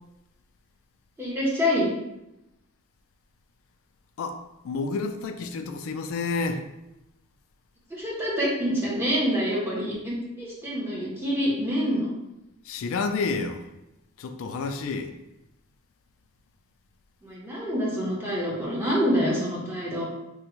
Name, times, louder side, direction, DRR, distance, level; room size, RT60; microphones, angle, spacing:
voice 1, 1.2-1.9 7.9-12.1 17.2-20.0, equal, 10° right, -6 dB, 0.7 m, -26 dB
voice 2, 4.6-6.6 12.6-13.6 14.2-15.1, left 4 dB, 70° left, 7 dB, 0.3 m, -29 dB
3.4 x 2.0 x 2.9 m, 0.91 s
head